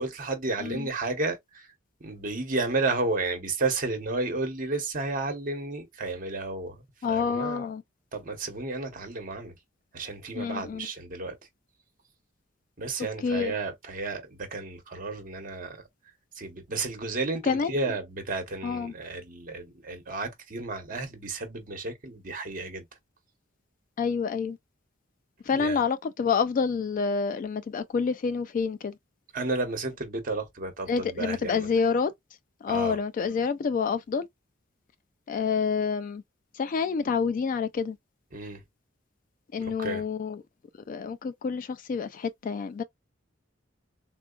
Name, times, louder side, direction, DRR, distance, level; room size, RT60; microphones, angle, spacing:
voice 1, 0.0-1.7 2.0-7.6 8.1-9.5 9.9-11.4 12.8-15.8 16.4-22.8 25.5-25.8 29.3-31.7 32.7-33.0 38.3-38.6 39.6-40.0, right 3 dB, 45° right, 0.9 m, -32 dB
voice 2, 7.0-7.8 10.4-10.9 13.2-13.5 17.4-17.7 18.6-18.9 24.0-24.6 25.5-29.0 30.9-32.1 32.6-34.3 35.3-36.2 36.5-38.0 39.5-40.4 40.9-42.8, left 5 dB, 45° left, 0.3 m, -28 dB
3.7 x 2.2 x 2.3 m
head